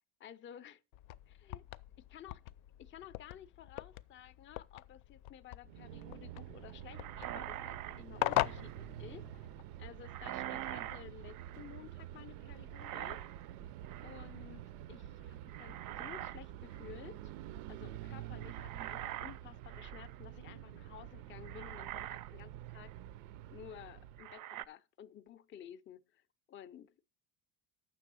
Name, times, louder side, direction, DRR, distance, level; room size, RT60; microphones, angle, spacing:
voice 1, 0.2-0.8 1.3-1.6 2.1-2.4 2.8-9.5 9.8-13.3 14.0-17.3 17.7-22.9 23.5-27.1, left 9 dB, 25° left, 0.4 m, -53 dB
sound 1, 0.9-9.6, left 15 dB, 85° left, 0.5 m, -41 dB
sound 2, 5.6-24.4, right 12 dB, 90° right, 0.6 m, -48 dB
sound 3, 6.9-8.9 10.0-11.8 12.7-13.5 13.8-14.3 15.5-16.4 16.7-17.0 18.4-20.2 20.9-21.0 21.4-22.3 22.8-22.9 24.2-24.6, right 13 dB, 45° right, 0.4 m, -45 dB
7.4 x 6.0 x 6.1 m
cardioid pair, 110°, 49 cm